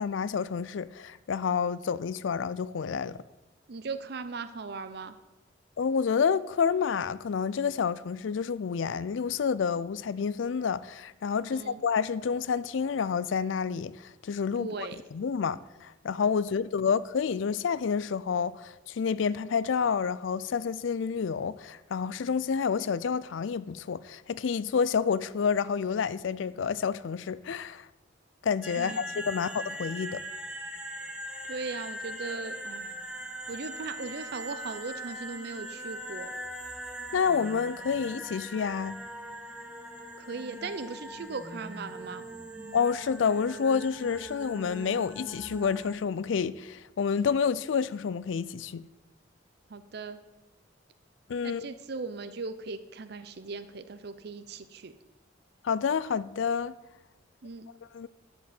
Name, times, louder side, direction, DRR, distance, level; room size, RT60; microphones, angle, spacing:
voice 1, 0.0-3.2 5.8-27.9 28.4-30.2 37.1-39.0 42.7-48.8 51.3-51.7 55.6-56.7 57.9-58.1, left 6 dB, 75° left, 0.4 m, -29 dB
voice 2, 3.7-5.2 11.4-11.8 14.6-15.0 28.8-29.3 31.5-32.9 33.5-36.3 40.2-42.2 49.7-50.2 51.4-54.9 57.4-57.7, right 4 dB, 55° right, 0.6 m, -38 dB
sound 1, 28.6-46.0, right 1 dB, 5° right, 1.0 m, -41 dB
11.5 x 5.1 x 8.4 m
head